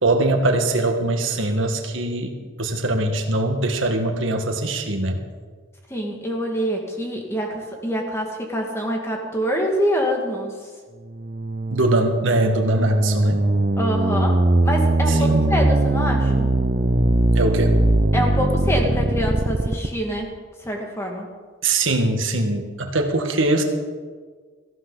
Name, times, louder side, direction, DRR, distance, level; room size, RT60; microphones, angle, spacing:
voice 1, 0.0-5.2 11.7-13.5 15.1-15.5 17.3-17.8 21.6-23.6, right 2 dB, 75° right, 4 dB, 1.6 m, -22 dB
voice 2, 5.9-10.6 13.8-14.4 14.6-16.5 18.1-20.3 20.6-21.3, equal, 15° left, 0 dB, 2.0 m, -25 dB
sound 1, 11.1-19.9, right 2 dB, 40° right, 0.7 m, -20 dB
18.0 x 14.5 x 4.0 m, 1.5 s
head